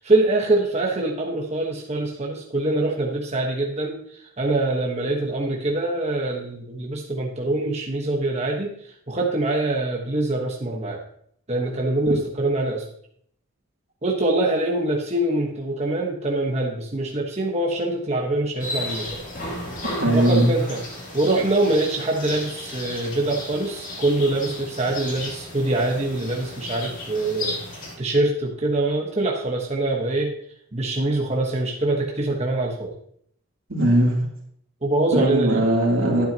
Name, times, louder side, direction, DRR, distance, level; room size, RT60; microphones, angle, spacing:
voice 1, 0.0-4.0 4.4-8.7 9.1-11.0 11.5-12.8 14.0-19.2 20.1-20.8 21.1-27.6 28.0-30.3 30.7-32.9 34.8-35.7, right 2 dB, 30° right, -1 dB, 1.2 m, -24 dB
sound 1, 18.6-27.9, left 2 dB, 40° left, 2.6 m, -34 dB
voice 2, 20.0-20.5 33.7-34.2 35.1-36.3, right 1 dB, 70° right, -3 dB, 2.9 m, -19 dB
11.0 x 9.1 x 2.9 m, 0.65 s
head